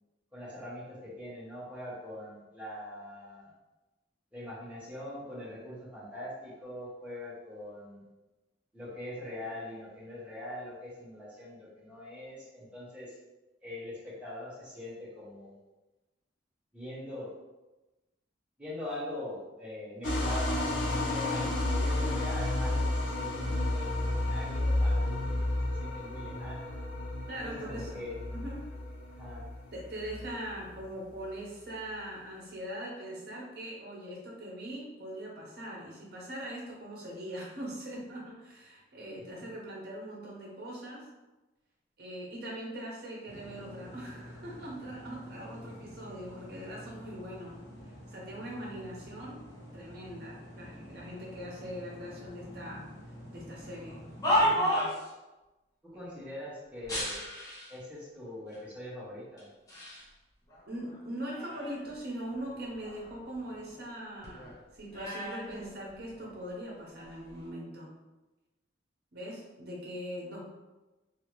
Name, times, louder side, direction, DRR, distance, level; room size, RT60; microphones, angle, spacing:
voice 1, 0.3-3.5 4.3-8.0 8.7-13.2 13.6-15.5 16.7-17.3 18.6-26.8 27.4-28.1 29.2-29.4 39.3-39.4 55.9-57.2 57.7-59.5, left 1 dB, 5° right, -9 dB, 0.9 m, -42 dB
sound 1, 20.0-30.9, left 1 dB, 75° left, 0.7 m, -31 dB
voice 2, 27.3-28.0 28.3-28.7 29.7-41.1 42.0-47.6 48.1-49.4 49.7-52.9 53.3-54.0 54.4-54.9 59.8-60.1 60.7-67.9 69.1-70.5, equal, 55° right, -3 dB, 0.8 m, -41 dB
sound 2, 43.2-54.6, equal, 55° left, 1.2 m, -48 dB
sound 3, 53.8-55.1 56.8-57.8 58.5-58.6 59.4-60.0 60.5-61.9 62.3-66.4 67.1-67.4, equal, 20° left, 0.7 m, -33 dB
2.8 x 2.4 x 3.0 m, 1.1 s
head